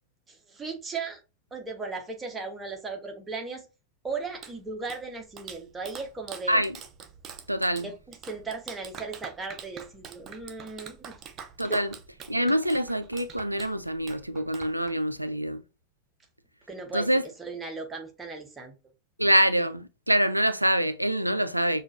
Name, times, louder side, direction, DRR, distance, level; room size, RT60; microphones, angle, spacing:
voice 1, 0.3-1.2 1.5-3.6 4.0-6.6 7.8-11.1 11.7-11.8 16.7-17.1 17.4-18.7, right 4 dB, 15° right, 1.0 m, -37 dB
Clapping, 4.1-15.2, right 7 dB, 30° right, 0.6 m, -46 dB
voice 2, 7.5-7.9 11.6-11.9 12.3-15.6 16.9-17.2 19.2-21.8, equal, 90° right, 0.4 m, -25 dB
6.0 x 2.4 x 2.5 m
figure-of-eight pair, 90°, 0 cm